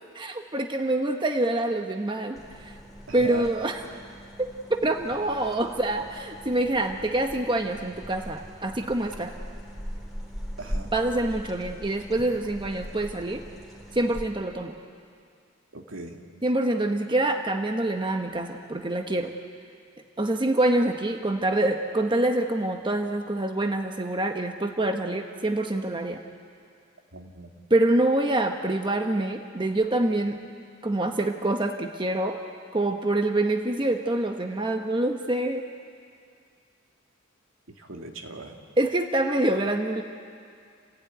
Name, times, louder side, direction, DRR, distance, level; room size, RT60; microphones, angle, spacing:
voice 1, 0.1-2.7 3.1-3.8 4.4-9.4 10.9-13.4 13.9-14.7 16.4-19.3 20.2-26.2 27.7-30.4 30.8-32.4 32.7-35.7 38.8-40.0, right 1 dB, 25° right, 4 dB, 1.1 m, -26 dB
sound 1, 2.3-14.2, equal, ahead, 3.3 m, -40 dB
voice 2, 3.1-3.5 10.6-10.9 15.7-16.2 27.1-27.5 37.9-38.6, right 3 dB, 75° right, 2 dB, 2.4 m, -38 dB
28.0 x 16.0 x 9.3 m, 2.3 s
head